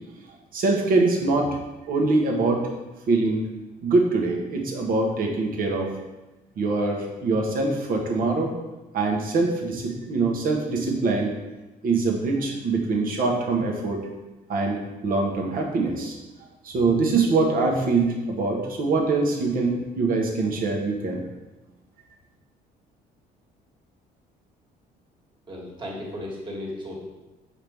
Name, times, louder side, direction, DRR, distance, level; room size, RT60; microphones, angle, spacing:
voice 1, 0.5-1.6 1.9-2.6 3.1-3.4 3.8-5.9 6.6-8.5 8.9-11.3 11.8-14.0 14.5-16.2 16.6-21.2, right 3 dB, 55° right, 0 dB, 1.3 m, -23 dB
voice 2, 25.5-27.0, left 1 dB, 30° right, -3 dB, 1.8 m, -35 dB
6.1 x 4.8 x 3.5 m, 1.1 s
cardioid pair, 110°, 17 cm